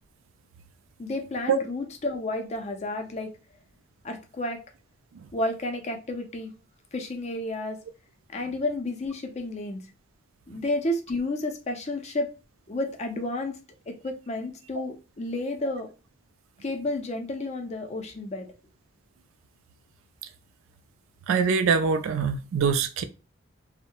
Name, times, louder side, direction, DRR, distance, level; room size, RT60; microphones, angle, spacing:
voice 1, 1.0-3.3 4.0-4.6 5.3-6.5 6.9-7.8 8.3-9.8 10.5-12.3 12.7-13.6 13.9-15.9 16.6-18.5, left 2 dB, 35° left, 0.5 m, -31 dB
voice 2, 21.3-23.0, right 5 dB, 75° right, 0.3 m, -23 dB
2.6 x 2.0 x 2.8 m
head